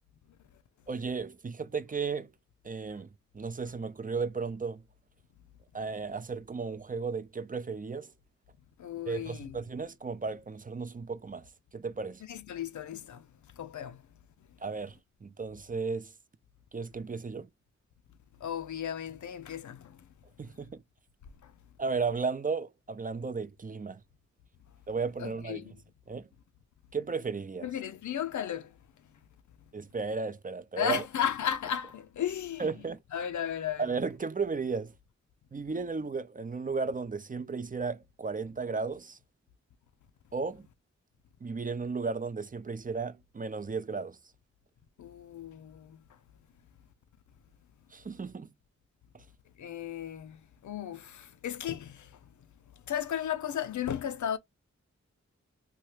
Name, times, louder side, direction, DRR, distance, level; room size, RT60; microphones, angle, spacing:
voice 1, 0.9-2.3 2.6-3.1 3.3-4.8 5.7-8.1 9.1-12.2 14.6-16.1 16.7-17.5 20.4-20.8 21.8-24.0 24.9-25.7 26.1-26.3 26.9-27.7 29.7-31.1 32.6-33.0 33.8-34.9 35.5-39.2 40.3-40.7 41.4-44.2 47.9-48.5 49.1-49.2, right 4 dB, 30° right, 0.4 m, -34 dB
voice 2, 8.8-9.6 12.3-13.2 13.6-14.0 18.4-20.0 25.2-25.8 27.6-28.7 30.8-32.7 33.1-33.9 45.0-46.0 49.6-50.4 50.6-52.1 52.9-54.4, left 9 dB, 85° left, 0.5 m, -34 dB
2.9 x 2.3 x 3.1 m
cardioid pair, 40°, 29 cm